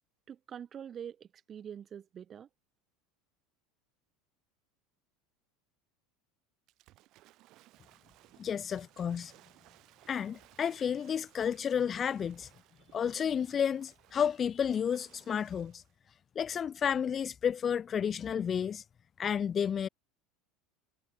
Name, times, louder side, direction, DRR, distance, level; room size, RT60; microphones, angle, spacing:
voice 1, 0.3-2.5, right 8 dB, 30° right, 2.4 m, -45 dB
Waves surf / Splash splatter, 6.7-15.9, right 18 dB, 50° right, 2.4 m, -62 dB
voice 2, 8.4-9.3 10.1-12.5 12.9-15.8 16.4-18.8 19.2-19.9, left 8 dB, 30° left, 0.4 m, -31 dB
figure-of-eight pair, 75°, 0 cm